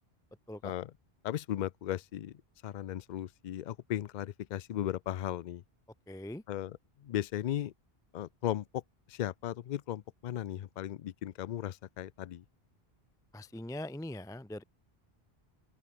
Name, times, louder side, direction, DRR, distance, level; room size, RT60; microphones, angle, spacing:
voice 1, 1.2-5.6 6.5-7.7 8.1-8.8 9.1-12.4, left 12 dB, 55° left, 0.6 m, -36 dB
voice 2, 6.1-6.4 13.3-14.6, left 1 dB, 5° left, 0.3 m, -41 dB
open air
omnidirectional pair, 1.0 m